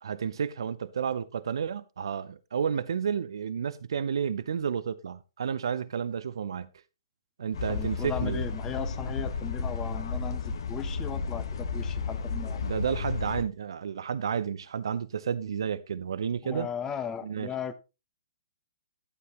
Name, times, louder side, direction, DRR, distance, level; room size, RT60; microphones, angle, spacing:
voice 1, 0.0-6.7 7.4-8.4 12.6-16.7 17.2-17.5, right 7 dB, 65° right, 0.6 m, -31 dB
sound 1, 7.5-13.4, left 4 dB, 60° left, 1.2 m, -32 dB
voice 2, 7.7-12.6 16.4-17.7, left 8 dB, 15° left, 1.0 m, -37 dB
12.0 x 9.4 x 2.9 m
figure-of-eight pair, 125°, 3 cm